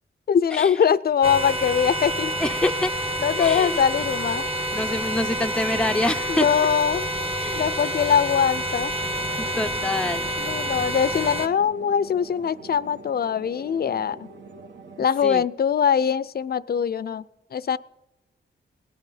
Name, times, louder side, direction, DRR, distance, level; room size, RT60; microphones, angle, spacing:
voice 1, 0.3-2.3 3.2-4.5 6.3-7.1 7.5-8.9 10.4-14.3 15.0-17.2 17.5-17.8, left 7 dB, 50° left, 19 dB, 0.5 m, -22 dB
sound 1, 1.2-11.5, right 1 dB, 25° right, 1.2 m, -28 dB
voice 2, 2.4-2.9 3.4-3.8 4.7-6.5 7.4-7.6 9.4-10.3 15.2-15.4, left 2 dB, 5° left, 7 dB, 0.5 m, -26 dB
sound 2, 9.0-15.1, right 3 dB, 65° right, 1.4 m, -44 dB
18.0 x 9.9 x 5.6 m, 0.97 s
cardioid pair, 55°, 20 cm